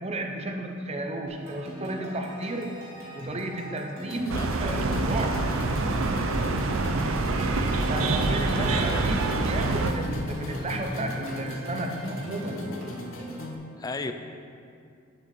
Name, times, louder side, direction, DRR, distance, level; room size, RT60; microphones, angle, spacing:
voice 1, 0.0-2.8 3.1-5.4 7.7-12.6, right 1 dB, 30° right, 3 dB, 0.6 m, -33 dB
sound 1, 1.3-13.6, equal, 65° right, 2.0 m, -41 dB
sound 2, 4.0-13.5, left 1 dB, 70° left, 0.7 m, -38 dB
sound 3, 4.3-9.9, right 3 dB, 85° right, 0.5 m, -26 dB
voice 2, 8.2-8.8 13.8-14.1, left 3 dB, 20° left, 8 dB, 0.3 m, -36 dB
8.1 x 7.7 x 3.2 m, 2.4 s
head